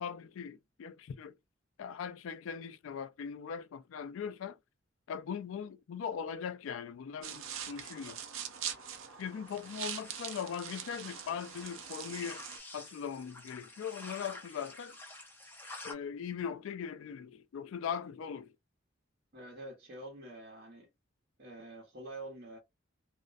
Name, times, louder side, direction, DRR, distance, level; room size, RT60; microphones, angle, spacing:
voice 1, 0.0-1.3 1.8-4.6 5.1-8.2 9.2-12.4 12.7-15.0 15.8-18.5, left 7 dB, 80° left, 0.3 m, -40 dB
sound 1, 7.2-12.6, right 8 dB, 85° right, 0.5 m, -43 dB
sound 2, 9.5-15.9, left 2 dB, 10° left, 0.5 m, -50 dB
voice 2, 19.3-20.9 21.4-22.6, right 2 dB, 50° right, 0.9 m, -46 dB
2.4 x 2.1 x 2.4 m
head